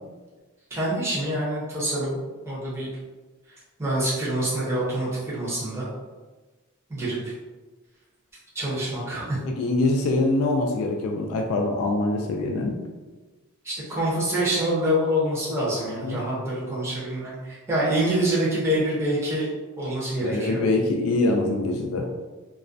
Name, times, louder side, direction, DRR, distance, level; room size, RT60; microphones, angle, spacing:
voice 1, 0.7-2.2 2.5-2.9 3.8-5.9 6.9-7.3 8.5-9.4 13.6-19.5 19.8-20.6, right 1 dB, 15° right, -9 dB, 0.7 m, -26 dB
voice 2, 9.5-12.8 16.0-16.2 20.2-22.1, left 2 dB, 80° left, 2 dB, 0.3 m, -24 dB
2.3 x 2.1 x 2.5 m, 1.3 s
head